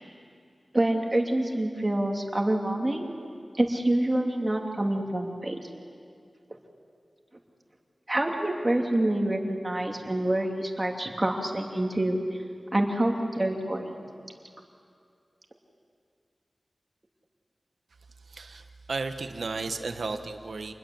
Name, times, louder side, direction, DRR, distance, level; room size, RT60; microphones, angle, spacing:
voice 1, 0.7-3.1 3.6-5.6 8.1-12.2 12.7-13.9, right 1 dB, 25° right, 2 dB, 2.7 m, -26 dB
voice 2, 18.3-20.7, right 3 dB, 85° right, 7 dB, 1.3 m, -34 dB
27.0 x 20.5 x 7.9 m, 2.3 s
wide cardioid pair, 95°, 0 cm